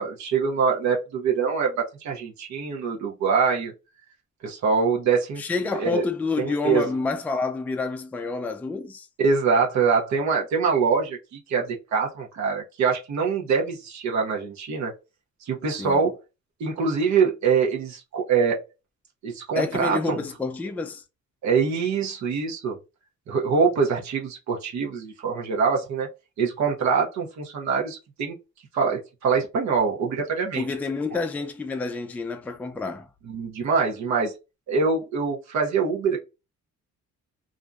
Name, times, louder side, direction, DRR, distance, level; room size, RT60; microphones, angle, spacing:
voice 1, 0.0-3.7 4.4-5.4 5.8-6.1 6.4-6.9 9.2-14.9 15.4-16.2 16.6-18.6 19.2-20.2 21.4-22.8 23.3-26.1 26.4-28.4 28.7-30.7 33.3-34.3 34.7-36.2, right 5 dB, 65° right, 0.8 m, -24 dB
voice 2, 5.4-9.1 15.8-16.1 19.6-21.0 30.5-33.1, left 4 dB, 5° left, 0.3 m, -28 dB
2.5 x 2.1 x 2.5 m
cardioid pair, 90°, 30 cm